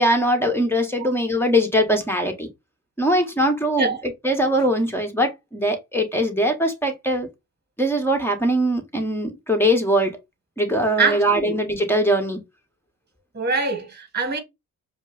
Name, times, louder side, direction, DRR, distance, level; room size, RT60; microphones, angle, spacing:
voice 1, 0.0-2.5 3.0-4.0 4.2-7.3 7.8-10.1 10.6-12.4, equal, 5° left, 1.5 m, -21 dB
voice 2, 11.0-11.6 13.3-14.4, right 4 dB, 25° right, 1.6 m, -24 dB
5.0 x 2.2 x 3.4 m
hypercardioid pair, 50°, 39 cm